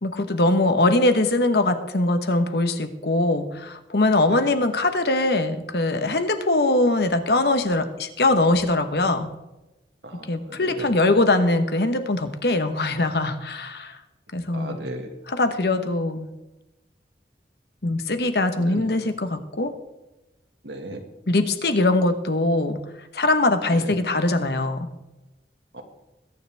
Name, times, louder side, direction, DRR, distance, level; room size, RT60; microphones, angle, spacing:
voice 1, 0.0-9.3 10.1-14.0 14.3-14.8 15.3-16.3 17.8-19.7 21.3-22.8 23.1-24.9, left 2 dB, 65° left, 9 dB, 1.2 m, -22 dB
voice 2, 10.0-10.9 14.5-15.1 18.6-18.9 20.6-21.0 23.7-24.0 25.7-25.8, right 1 dB, 85° right, 4 dB, 2.0 m, -36 dB
21.5 x 9.5 x 3.5 m, 1.0 s
head